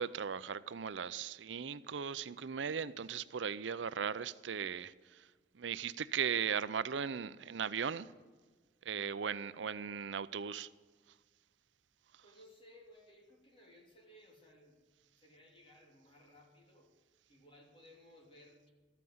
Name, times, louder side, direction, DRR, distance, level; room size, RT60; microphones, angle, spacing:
voice 1, 0.0-4.9 5.6-8.1 8.9-10.7, right 7 dB, 85° right, 0.5 m, -37 dB
voice 2, 12.2-14.8 15.2-16.9 17.3-18.7, left 1 dB, 30° left, 3.0 m, -60 dB
14.0 x 9.3 x 7.9 m
head